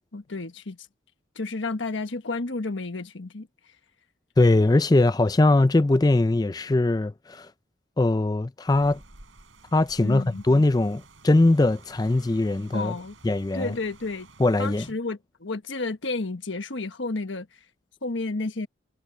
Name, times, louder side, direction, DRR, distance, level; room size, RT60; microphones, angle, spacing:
voice 1, 0.1-0.8 1.3-3.5 10.0-10.4 12.7-13.2 13.5-14.3 14.6-17.5 18.0-18.7, left 3 dB, 75° left, 1.3 m, -31 dB
voice 2, 4.4-7.5 8.0-9.0 9.7-12.9 13.2-13.7 14.4-14.9, left 2 dB, 20° left, 0.4 m, -21 dB
Rain, 8.7-14.9, right 2 dB, 90° right, 4.7 m, -52 dB
head